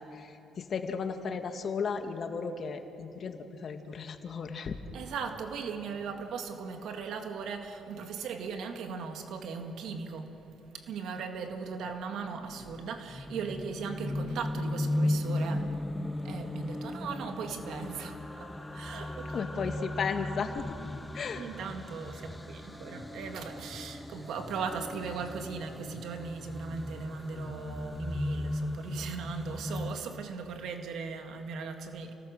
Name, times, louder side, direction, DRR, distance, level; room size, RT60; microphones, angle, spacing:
voice 1, 0.0-4.8 19.3-20.8 21.1-21.4, left 5 dB, 50° left, 1.8 m, -35 dB
voice 2, 4.9-10.5 10.7-15.8 16.2-19.7 21.4-32.1, right 5 dB, 75° right, 2.1 m, -38 dB
sound 1, 12.0-30.0, left 1 dB, 10° left, 1.2 m, -36 dB
29.0 x 18.5 x 6.6 m
cardioid pair, 90°, 0 cm